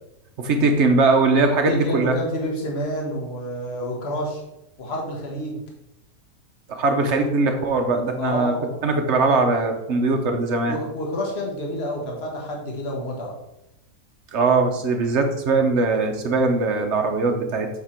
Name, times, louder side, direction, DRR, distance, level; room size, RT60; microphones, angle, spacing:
voice 1, 0.4-2.1 6.7-8.5 8.8-10.8 14.3-17.7, right 3 dB, 55° right, 4 dB, 1.0 m, -20 dB
voice 2, 1.7-4.4 4.8-5.6 8.2-9.0 10.7-13.4, equal, 45° left, -1 dB, 1.5 m, -29 dB
7.3 x 3.6 x 4.4 m, 0.89 s
omnidirectional pair, 1.6 m